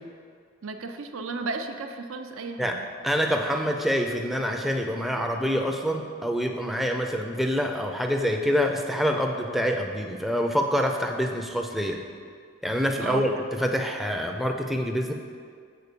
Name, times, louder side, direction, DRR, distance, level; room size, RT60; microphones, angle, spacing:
voice 1, 0.6-2.9 12.9-13.4, right 3 dB, 75° right, 6 dB, 0.5 m, -34 dB
voice 2, 3.0-12.0 12.6-15.1, equal, ahead, 2 dB, 0.4 m, -26 dB
6.8 x 4.4 x 6.7 m, 2.1 s
head